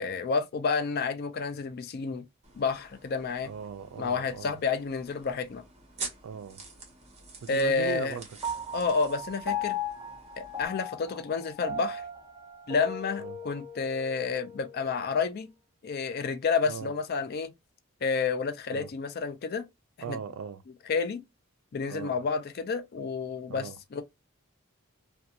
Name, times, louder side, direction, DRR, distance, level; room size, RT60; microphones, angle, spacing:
voice 1, 0.0-2.2 2.6-3.5 4.0-5.6 7.5-8.2 8.7-9.8 10.4-12.0 12.7-15.5 15.8-17.5 18.0-19.7 20.1-20.2 20.9-21.2 21.7-24.0, left 5 dB, 45° left, 0.4 m, -30 dB
sound 1, 2.4-10.7, right 4 dB, 30° right, 0.9 m, -47 dB
voice 2, 3.4-4.6 6.2-6.6 7.4-8.3 13.2-13.4 16.6-16.9 18.7-18.9 20.0-20.6 21.9-22.2 23.5-23.8, right 6 dB, 70° right, 0.3 m, -39 dB
Piano, 8.4-15.1, left 3 dB, 15° right, 0.5 m, -37 dB
2.4 x 2.2 x 2.6 m
head